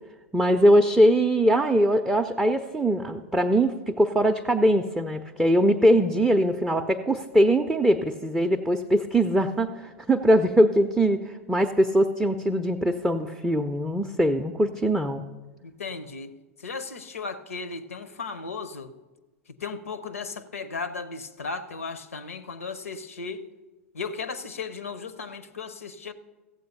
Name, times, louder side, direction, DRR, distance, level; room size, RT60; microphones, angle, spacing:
voice 1, 0.3-15.2, equal, 5° right, 0.5 m, -22 dB
voice 2, 15.6-16.3 16.6-18.9 19.6-23.4 23.9-26.1, left 4 dB, 70° left, 0.8 m, -35 dB
15.0 x 7.8 x 5.3 m
figure-of-eight pair, 95°, 8 cm